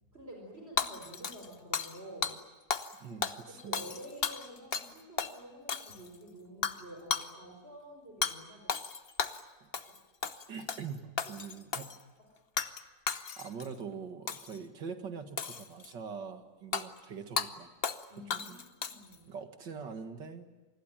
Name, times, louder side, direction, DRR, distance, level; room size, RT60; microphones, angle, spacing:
voice 1, 0.1-2.4 3.5-8.7 9.3-9.4 9.8-10.0 11.2-11.3 12.2-12.3 18.1-19.4, right 1 dB, 35° right, 0 dB, 4.9 m, -49 dB
Hammer / Shatter, 0.8-2.0 2.2-2.4 2.7-2.9 3.2-4.9 5.2-5.3 5.7-6.1 6.6-6.8 7.1-7.3 8.2-8.3 8.7-9.4 9.7-10.0 10.2-10.8 11.2-12.0 12.6-12.8 13.1-13.7 14.3-14.6 15.4-15.9 16.7-16.8 17.4-17.5 17.8-18.0 18.3-19.1, left 6 dB, 40° left, 1.0 m, -34 dB
voice 2, 3.0-3.8 9.6-9.7 10.5-11.9 13.4-17.7 18.1-18.6 19.3-20.5, right 6 dB, 75° right, 7 dB, 2.5 m, -43 dB
27.5 x 21.0 x 9.0 m, 1.2 s
omnidirectional pair, 2.0 m